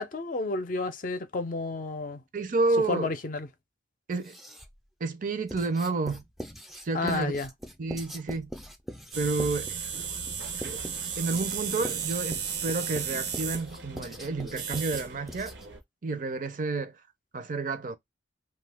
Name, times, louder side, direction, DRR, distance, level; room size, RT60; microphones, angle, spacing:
voice 1, 0.0-2.2 2.9-3.5 6.9-7.5, left 3 dB, 50° left, 0.5 m, -31 dB
voice 2, 2.3-3.1 4.1-4.4 5.0-6.2 6.8-7.3 7.8-8.5 9.2-9.8 10.6-10.8 11.2-15.6 16.0-17.0 17.3-18.0, right 3 dB, 45° right, 0.6 m, -30 dB
Writing, 4.1-4.8 5.5-15.8, equal, ahead, 0.4 m, -43 dB
sound 1, 9.1-15.8, right 7 dB, 75° right, 0.8 m, -35 dB
2.7 x 2.3 x 3.4 m
head